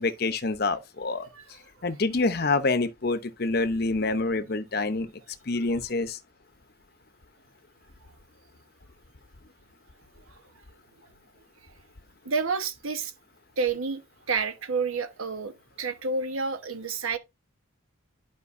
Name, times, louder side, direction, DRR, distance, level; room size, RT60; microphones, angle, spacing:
voice 1, 0.0-1.3 1.8-5.1 5.5-6.2, left 3 dB, 50° left, 0.7 m, -26 dB
voice 2, 1.1-1.6 1.9-2.0 10.3-10.4 12.2-13.1 13.6-14.0 14.3-17.2, right 4 dB, 85° right, 1.1 m, -30 dB
11.0 x 5.1 x 2.6 m
head